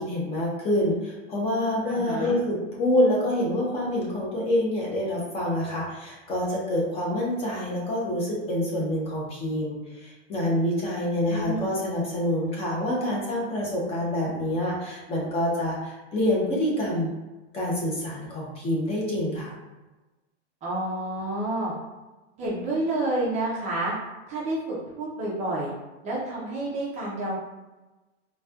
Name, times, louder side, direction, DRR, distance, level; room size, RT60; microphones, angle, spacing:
voice 1, 0.0-17.1 17.5-19.5, left 1 dB, 15° left, -4 dB, 0.7 m, -27 dB
voice 2, 1.8-2.4 11.3-11.7 20.6-21.7 22.4-23.9 24.3-25.7 26.0-27.4, right 2 dB, 20° right, -5 dB, 0.6 m, -29 dB
4.1 x 2.3 x 2.3 m, 1.1 s
supercardioid pair, 160°, 37 cm